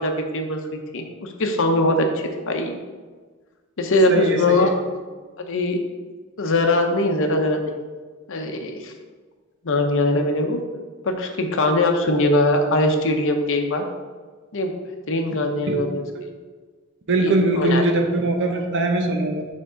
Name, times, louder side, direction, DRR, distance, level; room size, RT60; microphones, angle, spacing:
voice 1, 0.0-2.1 2.5-2.8 3.8-4.7 5.4-5.8 6.4-7.7 8.3-8.9 9.6-10.6 11.0-13.8 14.5-14.7 15.1-16.0 17.2-17.8, left 2 dB, 65° left, 4 dB, 0.7 m, -21 dB
voice 2, 4.1-4.7 15.7-15.8 17.1-19.5, right 2 dB, 60° right, 3 dB, 0.9 m, -21 dB
7.8 x 3.6 x 3.8 m, 1.4 s
head